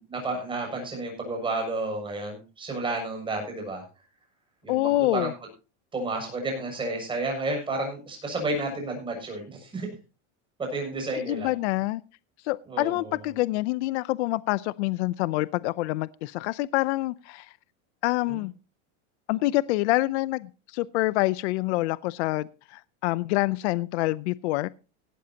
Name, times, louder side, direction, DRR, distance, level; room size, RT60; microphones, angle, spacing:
voice 1, 0.1-3.8 4.6-5.3 5.9-9.9 10.6-11.5 12.7-13.1 18.3-18.4, right 2 dB, 15° right, 6.7 m, -31 dB
voice 2, 4.7-5.3 11.1-12.0 12.4-17.5 18.0-18.5 19.3-24.7, left 19 dB, 70° left, 0.6 m, -26 dB
17.0 x 13.0 x 2.8 m
supercardioid pair, 165°, 35 cm